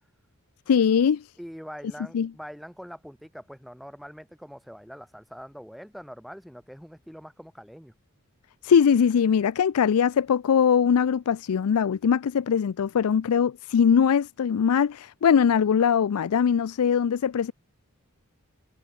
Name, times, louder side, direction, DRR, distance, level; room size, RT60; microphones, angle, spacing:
voice 1, 0.7-1.3 2.1-2.3 8.6-17.5, left 7 dB, 80° left, 0.4 m, -21 dB
voice 2, 1.4-7.9, equal, ahead, 1.9 m, -43 dB
head